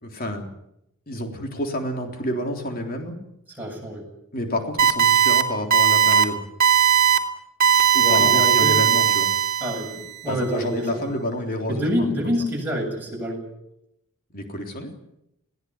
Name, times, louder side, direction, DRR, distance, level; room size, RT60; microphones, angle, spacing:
voice 1, 0.0-0.5 1.1-3.1 4.3-6.4 7.9-9.3 10.3-12.3 14.3-14.9, left 1 dB, 40° left, 3 dB, 3.6 m, -29 dB
voice 2, 3.6-4.1 8.0-8.8 9.6-11.0 11.7-13.5, equal, 10° right, -2 dB, 7.6 m, -27 dB
sound 1, 4.8-5.4 5.7-6.2 6.6-7.2 7.6-9.9, right 9 dB, 40° right, 2.9 m, -18 dB
21.0 x 17.5 x 9.6 m, 0.81 s
head